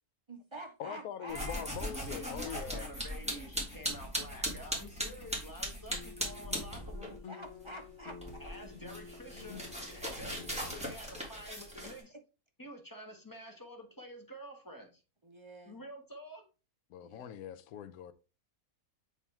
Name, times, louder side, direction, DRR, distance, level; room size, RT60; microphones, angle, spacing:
voice 1, 0.3-1.7 7.3-8.4 11.2-11.3 15.2-15.8 17.0-17.3, right 1 dB, 35° right, 0.5 m, -47 dB
voice 2, 0.8-2.9 16.9-18.1, left 9 dB, 75° left, 1.1 m, -43 dB
sound 1, 1.3-7.2 7.5-12.0, equal, 5° right, 2.0 m, -39 dB
voice 3, 1.9-7.2 8.4-12.1 12.6-15.0 15.6-16.4, equal, 15° left, 1.3 m, -49 dB
sound 2, 5.9-10.8, left 6 dB, 55° left, 1.3 m, -50 dB
7.2 x 3.5 x 4.3 m
omnidirectional pair, 1.6 m